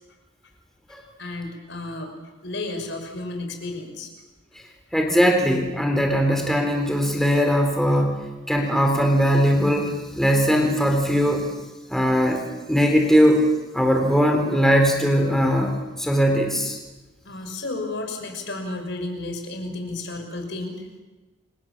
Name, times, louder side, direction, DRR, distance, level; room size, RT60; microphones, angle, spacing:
voice 1, 1.2-2.1 2.4-4.1 17.2-20.9, left 2 dB, 65° left, 4 dB, 6.1 m, -32 dB
voice 2, 4.9-11.5 11.9-12.4 12.7-13.4 13.7-16.8, equal, ahead, 3 dB, 3.8 m, -20 dB
29.5 x 25.0 x 7.4 m, 1.2 s
head